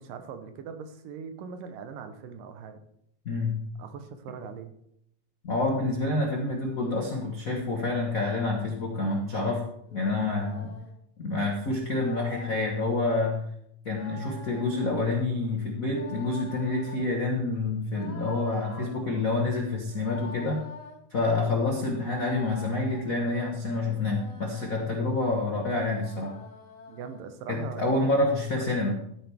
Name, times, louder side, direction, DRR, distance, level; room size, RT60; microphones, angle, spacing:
voice 1, 0.0-2.8 3.8-4.7 18.6-19.4 26.9-28.1 28.7-29.0, right 6 dB, 80° right, 8 dB, 2.6 m, -41 dB
voice 2, 3.2-3.6 5.4-9.6 9.9-10.8 11.2-13.4 13.8-20.6 21.1-26.4 27.5-29.0, left 2 dB, 90° left, 0 dB, 0.7 m, -28 dB
sound 1, 9.8-10.9 11.8-12.8 13.8-15.1 15.9-17.1 17.9-18.9 19.8-21.0 21.8-23.2 23.8-24.9 25.8-27.2, left 4 dB, 45° left, 1.4 m, -46 dB
14.0 x 9.1 x 3.5 m, 0.74 s
omnidirectional pair, 3.8 m